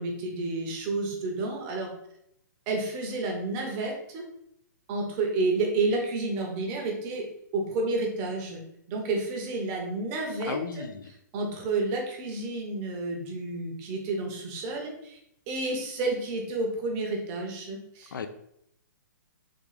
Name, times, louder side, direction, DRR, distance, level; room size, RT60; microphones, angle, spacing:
voice 1, 0.0-1.9 2.7-4.2 4.9-7.3 7.5-8.6 8.9-10.8 11.3-15.2 15.5-18.2, right 3 dB, 20° right, 0.6 m, -30 dB
voice 2, 10.5-11.0 18.1-18.3, left 5 dB, 85° left, 0.4 m, -34 dB
3.6 x 2.4 x 3.2 m
hypercardioid pair, 165°, 10 cm